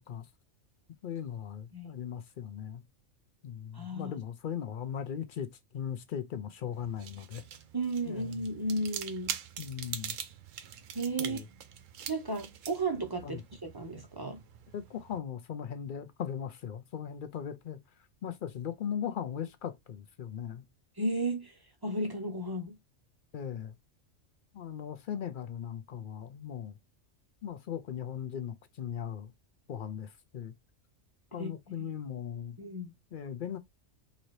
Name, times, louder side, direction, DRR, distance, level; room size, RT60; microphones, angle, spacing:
voice 1, 1.0-2.8 3.4-5.5 5.7-7.4 8.1-8.5 9.6-10.2 11.2-11.5 13.2-13.4 14.7-17.8 18.2-20.6 23.3-23.7 24.5-26.8 27.4-29.3 29.7-30.5 31.3-32.6 33.1-33.6, left 8 dB, 60° left, 0.5 m, -38 dB
voice 2, 3.7-4.1 7.7-9.3 10.9-11.4 12.1-14.4 21.0-21.5 21.8-22.8 31.4-31.5 31.8-31.9 32.6-32.9, right 2 dB, 30° right, 0.5 m, -34 dB
sound 1, 6.7-15.2, right 9 dB, 90° right, 1.0 m, -44 dB
4.0 x 2.7 x 3.1 m
omnidirectional pair, 1.3 m